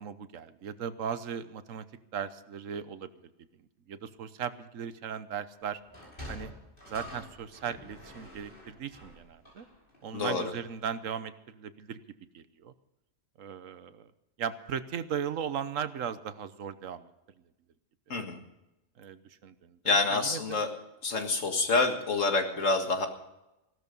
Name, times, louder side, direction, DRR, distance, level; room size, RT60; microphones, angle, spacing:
voice 1, 0.0-1.8 2.1-3.1 3.9-5.8 6.3-6.5 6.9-9.7 10.0-12.0 12.3-12.7 13.4-14.1 14.4-17.1 18.1-18.3 19.0-20.6, right 8 dB, 85° right, 13 dB, 1.3 m, -37 dB
Sliding door, 5.8-10.4, left 1 dB, 40° left, 5.7 m, -47 dB
voice 2, 10.1-10.5 18.1-18.4 19.8-20.7 21.0-23.1, left 3 dB, 75° left, 5 dB, 2.1 m, -27 dB
16.0 x 13.0 x 5.3 m, 0.93 s
omnidirectional pair, 1.3 m